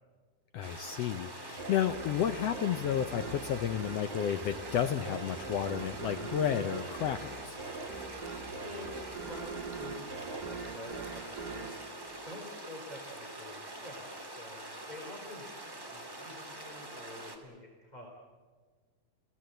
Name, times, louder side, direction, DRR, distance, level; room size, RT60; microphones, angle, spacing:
voice 1, 0.5-7.6, left 9 dB, 75° left, 9 dB, 1.4 m, -32 dB
sound 1, 0.6-17.4, right 1 dB, 10° right, 1.9 m, -45 dB
sound 2, 1.6-12.8, right 4 dB, 35° right, 2.4 m, -43 dB
voice 2, 8.6-8.9 9.2-11.7 12.2-18.1, left 1 dB, 15° left, 0 dB, 3.1 m, -48 dB
28.0 x 17.5 x 7.9 m, 1.5 s
omnidirectional pair, 3.8 m